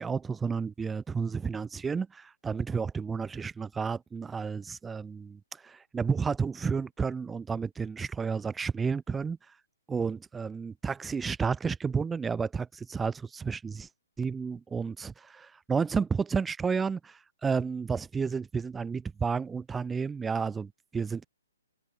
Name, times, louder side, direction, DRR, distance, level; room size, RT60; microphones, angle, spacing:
voice 1, 0.0-9.4 9.9-13.9 14.2-21.3, right 5 dB, 5° right, 0.5 m, -31 dB
open air
hypercardioid pair, 160°, 0 cm